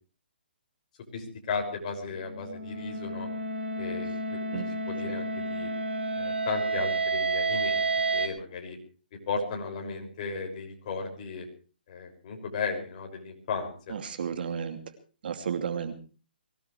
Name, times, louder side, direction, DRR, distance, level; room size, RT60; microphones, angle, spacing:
voice 1, 1.1-3.3 3.8-5.7 6.2-7.9 8.1-8.8 9.3-11.5 11.9-14.0, left 5 dB, 40° left, 2 dB, 6.1 m, -35 dB
sound 1, 2.0-8.3, right 3 dB, 85° right, 7.2 m, -30 dB
voice 2, 13.9-14.8 15.2-15.9, right 7 dB, 60° right, 7 dB, 2.6 m, -32 dB
23.5 x 18.5 x 3.3 m, 0.37 s
hypercardioid pair, 160°, 6 cm